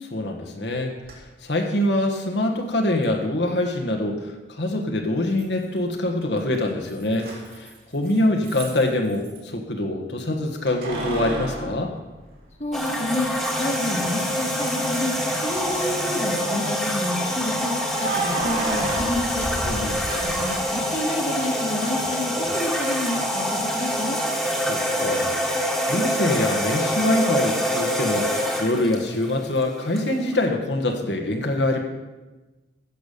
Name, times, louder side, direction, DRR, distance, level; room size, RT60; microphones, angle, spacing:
voice 1, 0.1-0.9 1.4-11.9 19.6-20.0 24.7-25.4 25.9-31.8, left 1 dB, 65° left, 2 dB, 1.5 m, -24 dB
Keys jangling, 1.0-1.1 3.0-3.1 5.4-5.9 6.2-9.4 10.7-12.8 13.3-13.4 15.2-15.7 17.7-20.6, right 2 dB, 50° right, 3.5 m, -32 dB
voice 2, 12.6-15.1 15.4-17.7 18.0-19.5 20.2-24.2, left 1 dB, 35° left, 2 dB, 1.6 m, -29 dB
sound 1, 12.7-30.5, equal, ahead, 1.7 m, -26 dB
15.0 x 7.2 x 6.7 m, 1.2 s
head